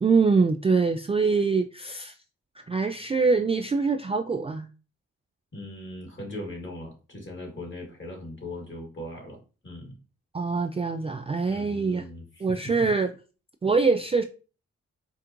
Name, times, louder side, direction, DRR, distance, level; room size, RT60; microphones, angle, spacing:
voice 1, 0.0-2.1 2.7-4.7 10.3-12.0 12.4-13.1 13.6-14.2, right 4 dB, 20° right, 6 dB, 0.3 m, -24 dB
voice 2, 5.5-9.4 9.6-9.9 11.5-12.7, left 1 dB, 35° left, 1 dB, 2.0 m, -39 dB
4.4 x 2.4 x 2.9 m, 0.34 s
supercardioid pair, 45°, 32 cm